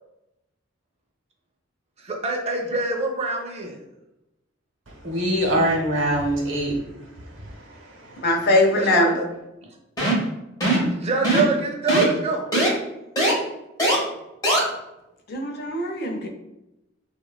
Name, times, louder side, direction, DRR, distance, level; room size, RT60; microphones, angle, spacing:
voice 1, 2.0-3.8 8.7-9.1 10.8-12.5, right 3 dB, 35° right, 1 dB, 0.5 m, -25 dB
voice 2, 5.0-6.8 7.3-8.3, right 1 dB, 75° right, 0 dB, 0.7 m, -24 dB
voice 3, 8.2-9.1 15.3-16.3, left 1 dB, 55° left, 2 dB, 0.4 m, -21 dB
sound 1, 10.0-10.3 10.6-10.9 11.2-11.6 11.9-12.1 12.5-12.7 13.2-13.3 13.8-14.0 14.4-14.6, right 1 dB, 20° left, 0.7 m, -20 dB
3.2 x 2.1 x 2.2 m, 0.93 s
head